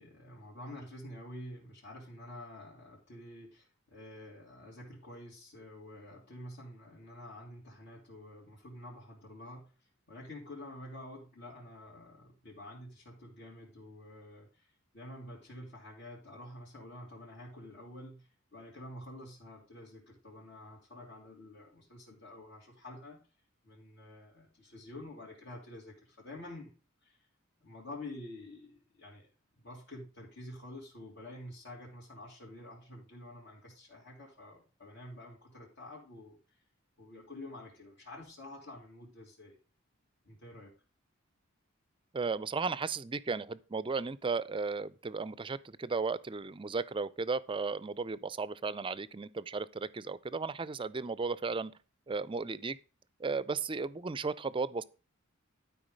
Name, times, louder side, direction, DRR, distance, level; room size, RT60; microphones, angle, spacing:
voice 1, 0.0-9.7 10.1-14.7 14.9-23.2 23.6-26.7 27.0-27.3 27.6-29.3 29.6-36.4 37.0-39.6 40.2-40.7, left 1 dB, 60° left, 3.0 m, -48 dB
voice 2, 42.1-51.7 52.1-52.8 53.2-54.8, right 4 dB, 25° right, 0.5 m, -35 dB
12.0 x 4.7 x 5.2 m
head